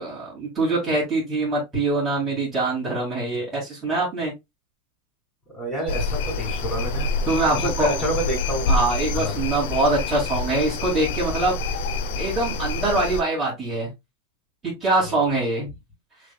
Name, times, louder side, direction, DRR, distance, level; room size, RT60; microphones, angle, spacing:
voice 1, 0.0-4.3 7.3-8.0 8.7-11.5 12.2-13.9 14.6-15.7, right 2 dB, 15° right, 2.4 m, -24 dB
voice 2, 5.5-7.1 7.5-8.7 9.1-9.4 15.0-15.2, equal, 10° left, 2.9 m, -28 dB
sound 1, 5.9-13.2, left 3 dB, 65° left, 0.8 m, -27 dB
6.4 x 3.5 x 2.3 m
supercardioid pair, 165°, 0 cm